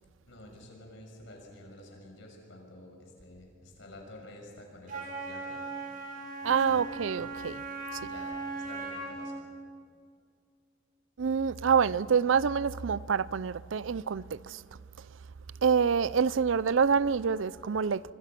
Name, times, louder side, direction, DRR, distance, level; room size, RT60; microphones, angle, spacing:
voice 1, 0.3-5.7 6.4-7.0 7.9-9.3, left 1 dB, 70° left, 6.4 m, -50 dB
Wind instrument woodwind instrument, 4.9-9.4, right 3 dB, 45° right, 6.4 m, -38 dB
voice 2, 6.4-7.6 7.9-8.0 11.2-14.6 15.0-15.1 15.6-18.0, right 6 dB, 75° right, 0.5 m, -27 dB
27.0 x 24.5 x 6.0 m
head